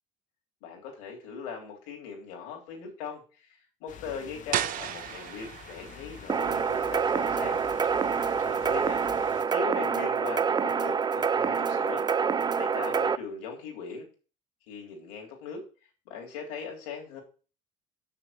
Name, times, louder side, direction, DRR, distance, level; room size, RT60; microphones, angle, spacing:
voice 1, 0.6-7.6 8.4-9.0 9.5-12.0 12.5-14.0 14.7-15.6 16.0-17.2, left 5 dB, 80° left, 0 dB, 3.3 m, -39 dB
sound 1, 3.9-9.4, left 7 dB, 50° left, 1.4 m, -48 dB
sound 2, 4.5-10.2, right 11 dB, 60° right, 0.8 m, -38 dB
sound 3, 6.3-13.2, right 6 dB, 25° right, 0.5 m, -27 dB
6.7 x 6.4 x 7.4 m, 0.36 s
supercardioid pair, 75°, 17 cm